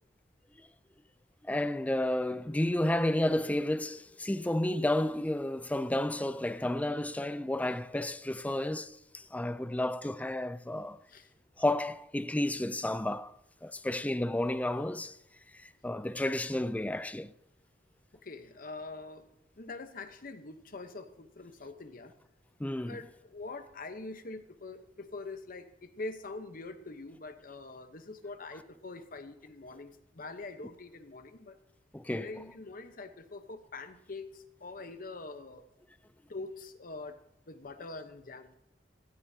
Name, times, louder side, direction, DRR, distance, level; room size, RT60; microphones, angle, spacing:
voice 1, 1.4-11.0 11.6-13.3 13.6-15.2 15.5-17.3 22.6-23.0 31.9-32.3, left 1 dB, 10° left, 0.4 m, -31 dB
voice 2, 18.1-19.2 19.6-22.1 22.8-31.6 32.2-35.7 36.3-37.2 37.5-38.5, left 3 dB, 50° left, 1.0 m, -44 dB
17.0 x 13.5 x 2.8 m
head